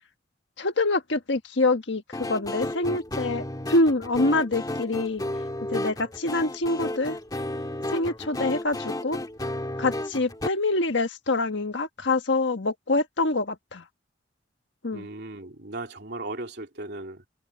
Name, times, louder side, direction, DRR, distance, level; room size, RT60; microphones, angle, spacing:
voice 1, 0.6-5.2 5.7-7.2 7.9-9.2 9.8-13.8 14.8-15.1, left 2 dB, 75° left, 1.5 m, -25 dB
sound 1, 2.1-10.5, left 1 dB, 20° left, 2.0 m, -33 dB
voice 2, 14.9-17.3, right 2 dB, 65° right, 3.1 m, -37 dB
head